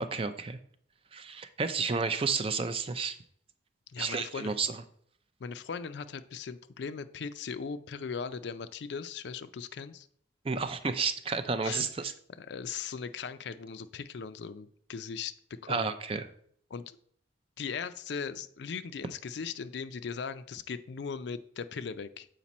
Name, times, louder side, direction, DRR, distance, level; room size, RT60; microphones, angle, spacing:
voice 1, 0.1-0.6 1.1-3.2 4.0-4.8 10.4-12.1 15.7-16.2, right 4 dB, 30° right, 10 dB, 0.4 m, -31 dB
voice 2, 3.9-4.6 5.4-10.1 11.6-12.1 12.4-15.9 16.7-17.0 17.6-22.3, left 6 dB, 60° left, 12 dB, 0.4 m, -39 dB
7.3 x 5.1 x 4.1 m, 0.63 s
head